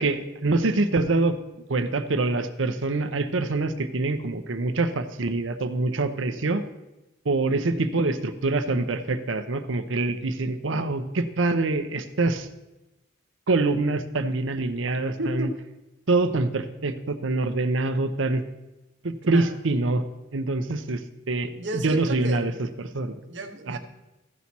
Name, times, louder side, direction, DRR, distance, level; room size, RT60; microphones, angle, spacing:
voice 1, 0.0-1.4 1.7-6.6 7.2-12.5 13.5-15.5 16.1-18.4 19.0-20.0 20.3-21.0 21.3-22.5 22.8-23.1 23.7-23.8, right 2 dB, 85° right, 8 dB, 0.8 m, -25 dB
voice 2, 15.2-15.5 19.3-19.5 21.5-22.4 23.3-23.8, right 1 dB, 65° right, 5 dB, 1.1 m, -32 dB
15.0 x 6.1 x 4.2 m, 0.99 s
head